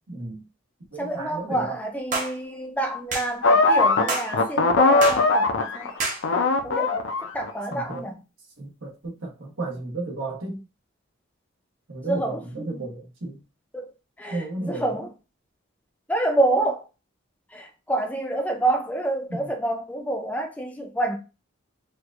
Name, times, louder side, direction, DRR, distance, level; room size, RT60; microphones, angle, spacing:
voice 1, 0.1-0.4 0.9-1.8 7.7-8.1 8.6-10.7 11.9-13.4 14.3-15.0 19.3-19.5, right 2 dB, 85° right, 1.2 m, -33 dB
voice 2, 1.0-5.5 5.7-5.9 6.6-7.0 7.3-8.1 12.1-12.4 12.7-12.8 13.7-13.9 14.2-15.1 16.1-16.8 17.5-21.2, right 2 dB, 5° left, 0.5 m, -27 dB
sound 1, 2.1-2.3 3.1-3.3 4.1-4.3 5.0-5.2 6.0-6.2, right 3 dB, 40° right, 0.8 m, -27 dB
sound 2, 3.4-6.0 6.2-8.0, left 3 dB, 70° left, 0.5 m, -20 dB
4.4 x 2.5 x 2.4 m
head